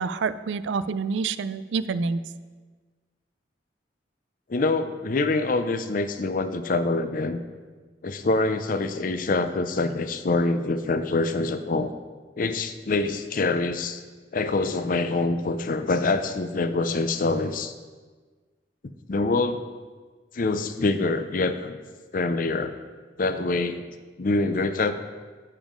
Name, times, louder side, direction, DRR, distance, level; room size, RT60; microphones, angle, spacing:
voice 1, 0.0-2.2, right 5 dB, 85° right, 14 dB, 0.4 m, -27 dB
voice 2, 4.5-7.4 8.0-11.9 12.4-14.0 14.3-17.7 19.1-19.6 20.3-21.8 22.1-22.7 23.2-23.8 24.2-24.9, left 3 dB, 50° left, 10 dB, 0.5 m, -25 dB
9.9 x 7.1 x 3.8 m, 1.4 s
head